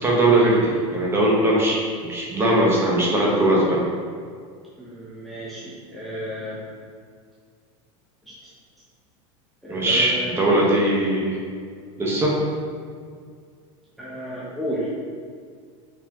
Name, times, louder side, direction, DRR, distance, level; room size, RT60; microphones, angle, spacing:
voice 1, 0.0-3.8 9.7-11.4 12.0-12.4, right 1 dB, 15° right, -4 dB, 1.3 m, -20 dB
voice 2, 4.8-6.6 8.2-8.3 9.6-10.9 14.0-14.9, right 1 dB, ahead, -9 dB, 0.9 m, -32 dB
6.7 x 4.7 x 3.1 m, 2.1 s
supercardioid pair, 145°, 16 cm